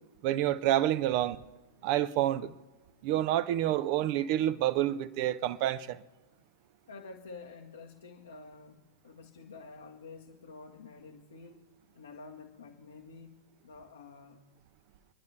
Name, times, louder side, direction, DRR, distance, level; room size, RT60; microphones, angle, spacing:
voice 1, 0.2-1.4 1.8-2.5 3.0-6.0, right 13 dB, 45° right, 0.6 m, -28 dB
voice 2, 6.9-11.6 11.9-14.4, left 4 dB, 75° left, 1.3 m, -49 dB
27.0 x 10.5 x 3.4 m
figure-of-eight pair, 95°, 0 cm